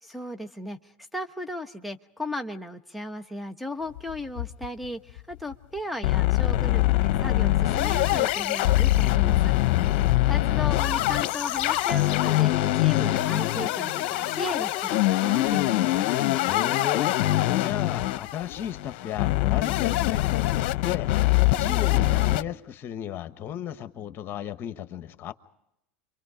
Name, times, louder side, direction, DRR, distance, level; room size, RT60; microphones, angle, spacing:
voice 1, 0.0-9.5 10.3-16.1, left 1 dB, ahead, 1.1 m, -36 dB
sound 1, 4.0-4.9 5.2-5.3 5.5-5.6 6.0-22.4, left 16 dB, 65° left, 0.8 m, -23 dB
voice 2, 9.7-10.3 16.4-17.2 17.5-20.5 20.8-25.3, left 10 dB, 45° left, 1.2 m, -35 dB
29.0 x 24.5 x 5.0 m
hypercardioid pair, 90°, 5 cm